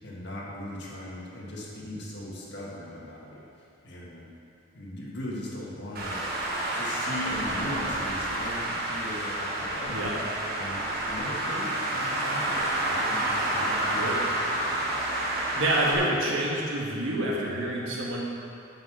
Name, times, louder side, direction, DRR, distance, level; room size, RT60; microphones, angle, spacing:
voice 1, 0.0-3.5 3.8-4.3 4.7-6.3 6.7-10.1 10.6-14.0 14.6-15.0, left 1 dB, 55° left, -4 dB, 1.7 m, -39 dB
Traffic noise roadway noise, 6.0-16.0, right 1 dB, 45° right, 1.5 m, -29 dB
voice 2, 15.5-18.2, right 1 dB, 70° right, -4 dB, 1.8 m, -27 dB
9.3 x 5.6 x 6.2 m, 2.6 s
head